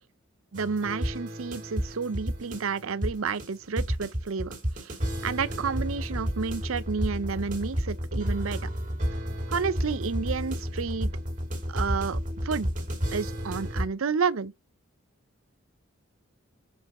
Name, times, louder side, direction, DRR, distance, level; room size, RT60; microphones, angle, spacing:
sound 1, 0.5-13.9, equal, 40° right, 2.6 m, -31 dB
voice 1, 0.5-5.0 5.2-8.7 9.5-11.1 11.7-12.7 13.1-14.5, right 5 dB, 80° right, 0.6 m, -30 dB
7.3 x 4.8 x 4.2 m
head